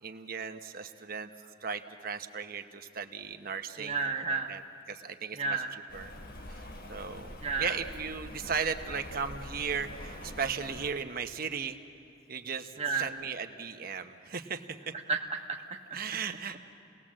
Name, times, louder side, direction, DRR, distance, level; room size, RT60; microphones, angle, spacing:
voice 1, 0.0-1.3 1.6-3.9 4.3-4.6 4.9-5.6 5.9-6.1 6.9-11.8 12.3-14.6 15.9-16.6, right 6 dB, 55° right, 7 dB, 1.1 m, -36 dB
voice 2, 3.8-4.6 5.3-5.7 7.4-7.8 12.8-13.1 15.1-16.0, right 4 dB, 35° right, 2 dB, 1.3 m, -32 dB
Rain, 5.9-10.9, left 1 dB, 55° left, 1.5 m, -45 dB
28.5 x 19.5 x 7.5 m, 2.7 s
head